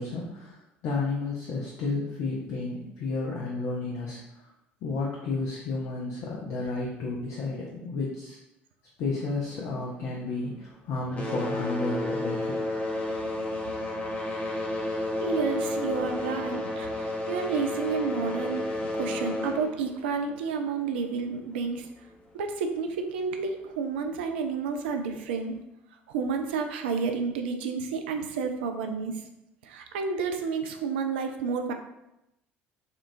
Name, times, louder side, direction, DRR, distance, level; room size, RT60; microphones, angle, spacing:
voice 1, 0.0-4.2 4.8-8.4 9.0-12.6, left 3 dB, 50° left, -3 dB, 0.5 m, -32 dB
sound 1, 9.3-10.7 11.0-21.2 22.1-22.2 22.9-23.0 23.6-23.7, left 1 dB, 20° left, 0.8 m, -32 dB
voice 2, 15.2-21.9 22.3-25.5 26.1-29.2 29.6-31.7, right 5 dB, 65° right, 5 dB, 0.3 m, -30 dB
3.6 x 2.3 x 2.6 m, 0.87 s
figure-of-eight pair, 60°, 6 cm